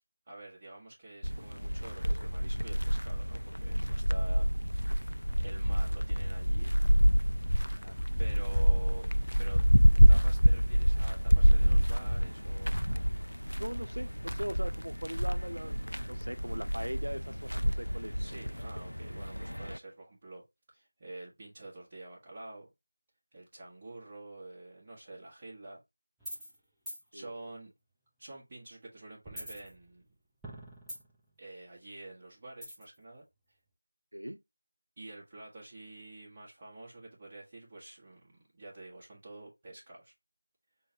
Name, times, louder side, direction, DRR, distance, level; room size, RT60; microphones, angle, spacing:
voice 1, 0.3-4.5 5.4-6.7 8.2-9.1 9.4-9.6 10.1-12.8 18.2-20.4 20.7-22.7 23.3-25.8 27.1-27.7 28.2-30.1 31.4-33.2 35.0-40.1, right 2 dB, 20° right, 1.2 m, -48 dB
sound 1, 1.2-19.8, equal, 85° left, 0.3 m, -27 dB
voice 2, 13.6-18.2 27.1-27.3 34.1-34.4, equal, 70° right, 0.6 m, -40 dB
sound 2, 26.2-26.6 26.9-27.0 29.2-30.1 30.4-31.3 32.6-33.0, equal, ahead, 0.6 m, -43 dB
6.0 x 2.1 x 2.7 m
figure-of-eight pair, 170°, 0 cm